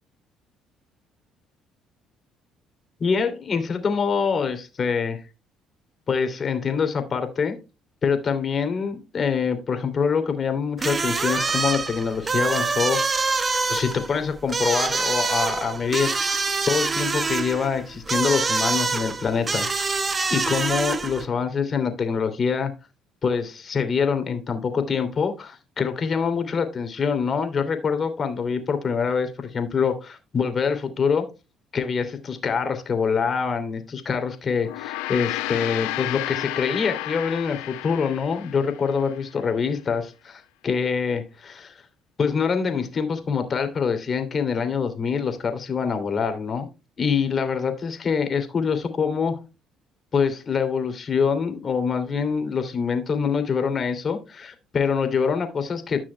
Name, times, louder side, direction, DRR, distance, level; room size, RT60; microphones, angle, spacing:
voice 1, 3.0-5.2 6.1-7.6 8.0-13.4 13.7-16.4 16.7-19.7 20.3-22.7 23.2-31.2 31.7-41.7 42.2-46.7 47.0-49.4 50.1-56.0, left 6 dB, 45° left, 7 dB, 2.8 m, -25 dB
sound 1, 10.8-21.3, right 4 dB, 30° right, 1.3 m, -25 dB
Gong, 34.6-39.2, left 19 dB, 80° left, 0.6 m, -32 dB
15.5 x 6.1 x 2.2 m, 0.28 s
supercardioid pair, 65°, 0 cm